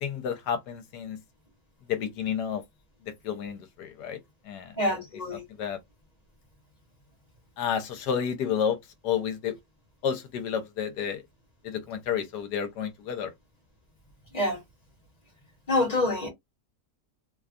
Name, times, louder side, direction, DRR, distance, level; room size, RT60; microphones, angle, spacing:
voice 1, 0.0-1.2 1.9-2.6 3.0-4.2 4.4-5.0 5.5-5.8 7.6-9.5 10.0-11.2 11.6-13.3, left 8 dB, 75° left, 1.3 m, -31 dB
voice 2, 4.8-5.4 14.3-14.6 15.7-16.3, left 1 dB, 30° left, 0.9 m, -26 dB
3.0 x 2.3 x 2.4 m
omnidirectional pair, 1.8 m